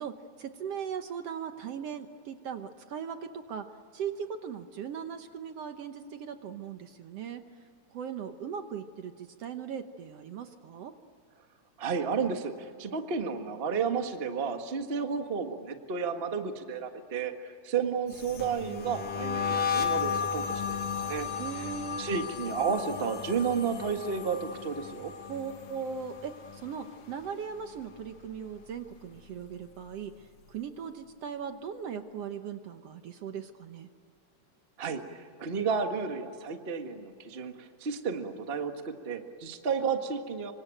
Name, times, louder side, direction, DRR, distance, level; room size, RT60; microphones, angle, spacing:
voice 1, 0.0-3.7 3.9-7.4 7.9-10.9 21.4-22.1 25.2-33.9, right 7 dB, 65° right, 8 dB, 1.9 m, -39 dB
voice 2, 11.8-21.3 21.6-21.7 22.0-25.1 34.8-40.5, right 6 dB, 30° right, 6 dB, 1.2 m, -32 dB
sound 1, 18.1-27.3 27.6-28.0 28.3-29.9, left 6 dB, 60° left, 3.0 m, -35 dB
26.5 x 25.0 x 9.0 m, 2.2 s
omnidirectional pair, 3.4 m